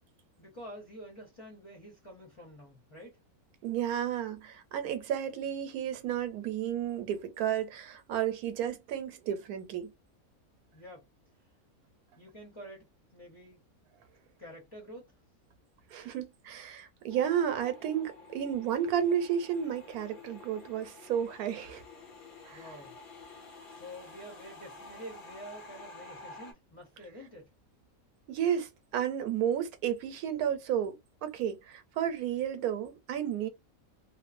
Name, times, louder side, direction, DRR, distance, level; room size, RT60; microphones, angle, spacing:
voice 1, 0.4-3.2 10.7-11.1 12.2-13.6 14.4-15.1 22.5-23.0 23.7-27.5, equal, 25° left, 0.9 m, -48 dB
voice 2, 3.6-9.9 15.9-21.8 22.4-22.7 28.3-31.0 31.2-33.5, right 9 dB, 90° right, 1.1 m, -32 dB
sound 1, 17.1-26.5, left 3 dB, 75° left, 1.5 m, -50 dB
2.9 x 2.1 x 2.5 m
omnidirectional pair, 1.5 m